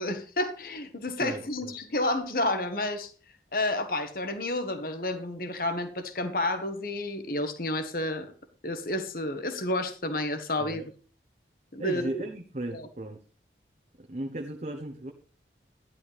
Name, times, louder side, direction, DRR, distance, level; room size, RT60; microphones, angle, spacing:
voice 1, 0.0-3.1 3.5-8.3 8.6-10.8 11.7-12.3 12.7-12.9, left 1 dB, 50° left, 8 dB, 1.5 m, -30 dB
voice 2, 1.2-1.7 10.6-10.9 11.8-13.2 14.0-15.1, right 1 dB, 40° right, 3 dB, 1.0 m, -36 dB
13.0 x 11.5 x 3.4 m, 0.37 s
head